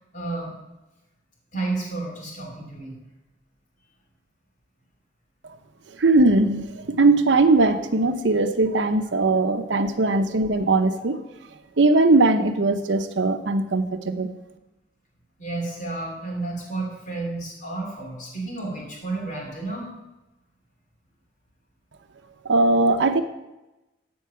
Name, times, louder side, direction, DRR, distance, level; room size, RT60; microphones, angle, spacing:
voice 1, 0.1-0.5 1.5-2.9 15.4-19.9, right 2 dB, 45° left, -2 dB, 2.8 m, -31 dB
voice 2, 6.0-11.2 11.8-14.3 22.4-23.2, right 2 dB, 85° right, 9 dB, 0.7 m, -20 dB
13.0 x 4.6 x 5.7 m, 0.99 s
head